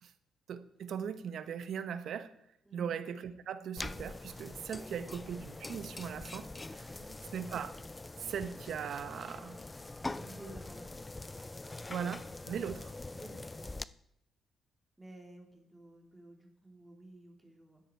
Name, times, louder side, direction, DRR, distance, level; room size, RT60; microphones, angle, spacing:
voice 1, 0.5-2.3 2.7-6.9 7.3-7.8 8.2-9.6 11.9-12.9, right 8 dB, 65° right, 11 dB, 1.1 m, -39 dB
sound 1, 3.8-13.8, left 2 dB, 20° left, 0.4 m, -44 dB
voice 2, 10.1-11.0 13.1-13.8 15.0-17.8, right 2 dB, 10° right, 1 dB, 3.2 m, -53 dB
12.5 x 10.0 x 4.6 m, 0.76 s
cardioid pair, 90°, 0 cm